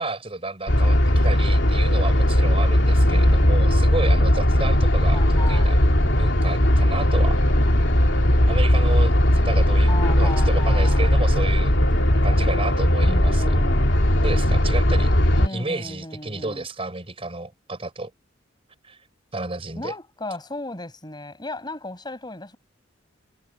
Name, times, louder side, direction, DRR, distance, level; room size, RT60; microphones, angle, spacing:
voice 1, 0.0-5.8 6.1-7.4 8.5-9.9 10.2-11.7 12.2-13.5 14.2-15.1 15.4-18.1 18.8-19.0 19.3-19.9, right 2 dB, 30° right, 4.1 m, -31 dB
sound 1, 0.7-15.5, equal, 70° left, 2.9 m, -18 dB
voice 2, 3.1-3.7 5.1-5.8 9.9-11.1 13.0-13.9 15.4-16.7 19.8-22.6, left 2 dB, 25° left, 5.5 m, -35 dB
head